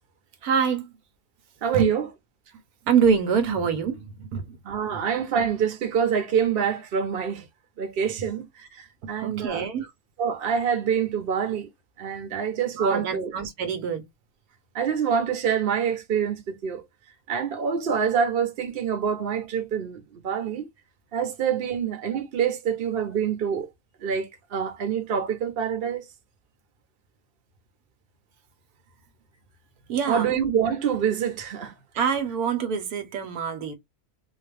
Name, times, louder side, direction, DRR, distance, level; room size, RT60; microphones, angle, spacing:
voice 1, 0.4-0.9 1.7-1.9 2.9-4.6 4.9-5.0 8.2-8.3 9.2-9.9 12.7-14.0 29.9-30.3 31.9-33.7, right 6 dB, 80° right, 1.2 m, -25 dB
voice 2, 1.6-2.1 4.6-7.4 7.8-9.7 10.2-11.7 12.0-13.3 14.7-16.8 17.3-20.7 21.1-23.7 24.0-26.0 30.1-31.7, right 7 dB, 45° right, 0.9 m, -26 dB
3.9 x 2.3 x 3.3 m
omnidirectional pair, 1.6 m